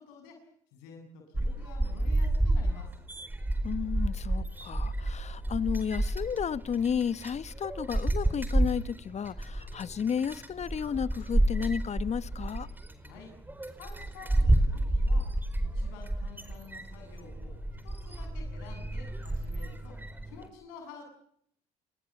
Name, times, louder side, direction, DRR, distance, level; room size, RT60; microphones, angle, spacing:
voice 1, 0.0-2.9 13.0-13.4 13.8-15.3 15.6-17.6 17.8-21.0, left 5 dB, 80° left, 7.1 m, -50 dB
sound 1, 1.3-20.5, right 1 dB, 10° right, 4.6 m, -30 dB
voice 2, 3.6-12.7, left 7 dB, 40° left, 1.2 m, -32 dB
29.5 x 19.5 x 7.2 m
hypercardioid pair, 65°, 18 cm